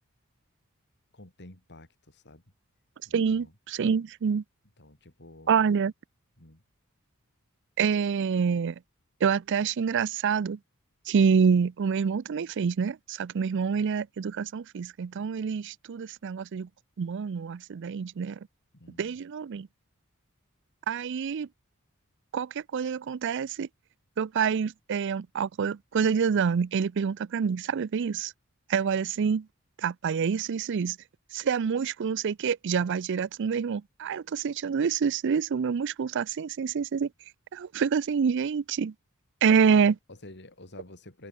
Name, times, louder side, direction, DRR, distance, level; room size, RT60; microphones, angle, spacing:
voice 1, 1.1-2.4 3.1-3.5 4.8-5.7 6.4-6.6 18.7-19.2 39.6-41.3, left 1 dB, 55° left, 4.1 m, -50 dB
voice 2, 3.1-4.4 5.5-5.9 7.8-8.8 9.2-10.6 11.1-16.7 17.0-18.4 19.0-19.7 20.9-21.5 22.3-23.7 24.2-28.3 28.7-29.5 29.8-31.0 31.3-37.1 37.5-38.9 39.4-40.0, right 6 dB, 60° right, 0.4 m, -27 dB
open air
head